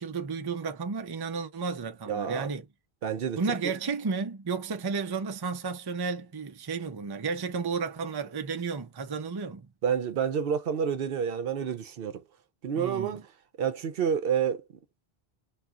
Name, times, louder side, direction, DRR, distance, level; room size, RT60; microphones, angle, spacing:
voice 1, 0.0-2.7 3.4-9.7 12.7-13.2, right 5 dB, 30° right, 0.4 m, -32 dB
voice 2, 2.1-2.5 3.0-3.4 3.6-3.8 9.8-12.2 12.6-13.3 13.6-14.6, right 7 dB, 65° right, 0.8 m, -29 dB
2.5 x 2.3 x 3.5 m
omnidirectional pair, 1.1 m